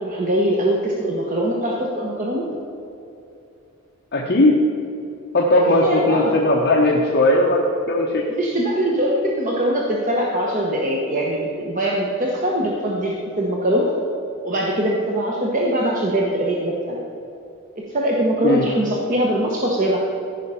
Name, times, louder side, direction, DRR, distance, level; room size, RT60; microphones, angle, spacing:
voice 1, 0.0-2.5 5.6-6.4 8.3-13.9 14.4-17.0 17.7-20.0, right 1 dB, 35° right, -2 dB, 1.0 m, -22 dB
voice 2, 4.1-4.6 5.3-8.2 18.4-18.7, left 1 dB, 50° left, -2 dB, 0.9 m, -17 dB
14.5 x 5.7 x 5.6 m, 2.7 s
head